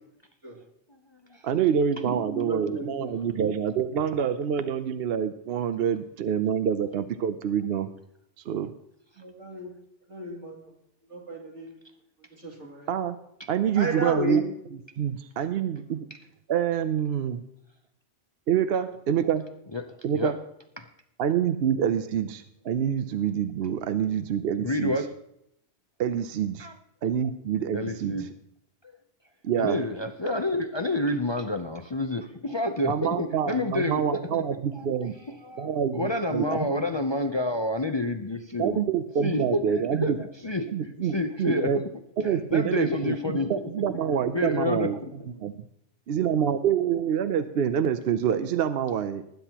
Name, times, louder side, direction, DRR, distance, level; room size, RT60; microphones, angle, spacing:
voice 1, 1.4-7.9 8.5-8.7 12.9-13.2 13.5-14.4 14.7-16.1 16.5-17.4 18.5-19.4 20.0-20.4 21.2-24.9 26.0-26.7 27.0-28.2 29.4-29.8 32.8-35.1 35.6-36.7 38.6-40.2 40.7-41.1 41.4-41.8 42.2-45.0 45.4-45.5 46.1-49.3, right 8 dB, 65° right, 11 dB, 0.8 m, -26 dB
voice 2, 2.1-3.4 9.2-9.7 10.1-10.6 11.1-11.7 12.4-12.9 13.8-14.4, right 1 dB, 80° right, -1 dB, 2.9 m, -33 dB
voice 3, 19.7-20.3 20.8-20.9 24.6-25.1 26.6-26.7 27.7-28.3 29.6-34.0 34.3-34.4 34.7-34.9 35.4-38.8 39.2-41.7 42.2-43.6 44.3-45.6, left 1 dB, 30° left, 6 dB, 0.5 m, -29 dB
20.0 x 10.0 x 2.9 m, 0.77 s
omnidirectional pair, 1.2 m